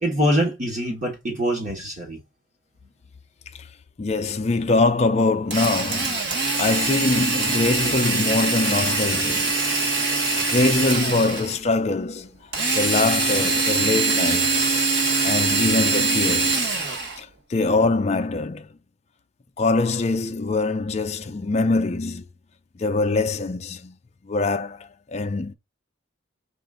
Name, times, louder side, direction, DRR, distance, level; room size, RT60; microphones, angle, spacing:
voice 1, 0.0-2.2, equal, 40° right, 1.4 m, -24 dB
voice 2, 4.0-9.5 10.5-12.4 12.7-14.7 15.2-16.7 17.2-18.7 19.6-22.2 22.8-23.9 24.3-25.5, left 3 dB, 35° left, 0.4 m, -23 dB
Drill, 5.5-11.6 12.5-17.2, right 3 dB, 60° right, 1.6 m, -23 dB
5.0 x 2.5 x 3.6 m
head